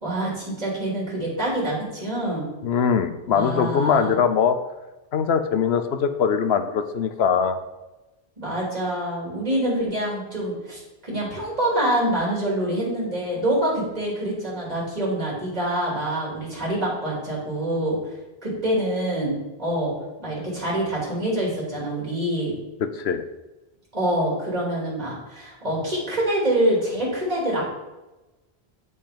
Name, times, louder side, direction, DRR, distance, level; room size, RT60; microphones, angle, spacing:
voice 1, 0.0-2.4 3.3-4.2 8.4-18.1 18.4-19.9 20.2-22.5 23.9-27.7, right 1 dB, 40° right, -5 dB, 2.9 m, -26 dB
voice 2, 2.6-4.6 5.1-7.6 22.8-23.2, left 7 dB, 80° left, 10 dB, 1.0 m, -22 dB
8.1 x 5.5 x 5.1 m, 1.1 s
omnidirectional pair, 1.1 m